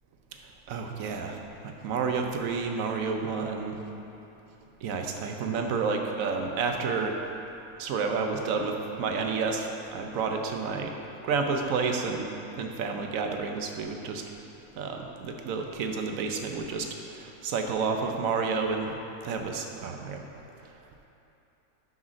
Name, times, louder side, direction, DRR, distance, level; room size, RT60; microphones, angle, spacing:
voice 1, 0.7-3.8 4.8-7.2 7.8-10.9 11.2-12.3 12.6-14.2 14.8-18.9 19.2-20.2, right 4 dB, 70° right, 3 dB, 1.0 m, -30 dB
6.1 x 5.2 x 6.1 m, 3.0 s
omnidirectional pair, 1.5 m